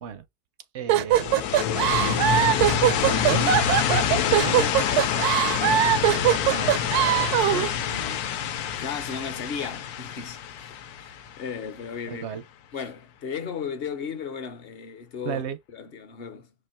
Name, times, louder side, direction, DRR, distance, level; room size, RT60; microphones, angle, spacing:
voice 1, 0.7-1.5 2.0-2.8 3.0-3.5 4.1-4.7 6.5-6.8 7.1-7.6 12.1-12.4 15.2-15.6, right 7 dB, 65° right, 0.7 m, -34 dB
sound 1, 0.9-7.7, right 11 dB, 80° right, 1.1 m, -21 dB
sound 2, 1.1-11.8, left 9 dB, 80° left, 1.1 m, -26 dB
voice 2, 3.8-4.4 4.8-5.1 7.4-10.4 11.0-12.2 12.7-15.4 15.7-16.5, left 6 dB, 50° left, 0.7 m, -36 dB
4.3 x 2.5 x 4.2 m
omnidirectional pair, 1.6 m